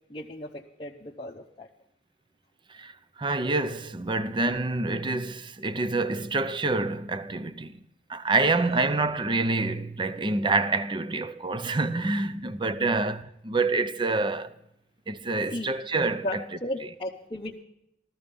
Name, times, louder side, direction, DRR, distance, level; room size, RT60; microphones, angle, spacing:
voice 1, 0.1-1.7 13.0-13.1 15.5-15.7 16.2-17.6, left 1 dB, 30° left, 0.7 m, -35 dB
voice 2, 3.2-7.8 8.1-14.5 15.1-16.4, right 3 dB, 25° right, 0.6 m, -27 dB
14.5 x 13.5 x 5.3 m
head